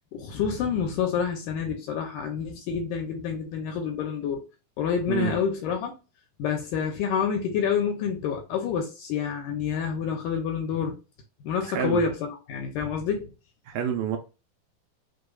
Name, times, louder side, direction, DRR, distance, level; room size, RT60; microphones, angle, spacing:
voice 1, 0.1-4.4 4.8-6.0 6.4-11.0 11.4-13.3, left 7 dB, 80° left, 2.0 m, -28 dB
voice 2, 5.1-5.4 11.6-12.0 13.7-14.2, right 9 dB, 75° right, 2.1 m, -28 dB
6.2 x 3.1 x 2.3 m
omnidirectional pair, 4.3 m